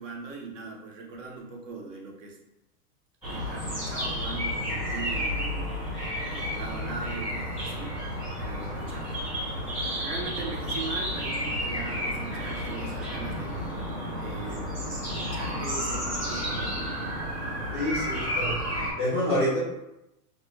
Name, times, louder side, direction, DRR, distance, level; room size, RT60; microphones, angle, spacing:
voice 1, 0.0-2.4 3.2-5.8 6.2-8.0 8.4-9.1 9.5-13.7 14.1-16.9, right 4 dB, 50° right, 0 dB, 0.8 m, -40 dB
sound 1, 3.2-18.9, equal, 5° right, 0.9 m, -31 dB
voice 2, 17.7-18.6 19.0-19.6, left 1 dB, 20° left, -10 dB, 0.4 m, -27 dB
3.3 x 2.3 x 3.1 m, 0.90 s
supercardioid pair, 170°, 48 cm